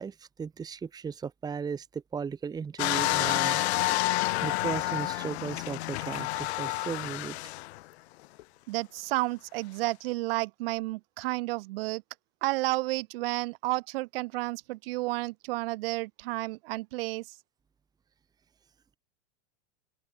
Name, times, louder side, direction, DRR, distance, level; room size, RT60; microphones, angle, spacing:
voice 1, 0.0-3.6 4.4-7.4, right 6 dB, 10° right, 1.6 m, -36 dB
sound 1, 2.8-7.8 8.4-8.5, left 19 dB, 65° left, 0.7 m, -29 dB
voice 2, 8.7-12.0 12.4-17.3, right 21 dB, 55° right, 2.4 m, -31 dB
open air
supercardioid pair, 160°, 34 cm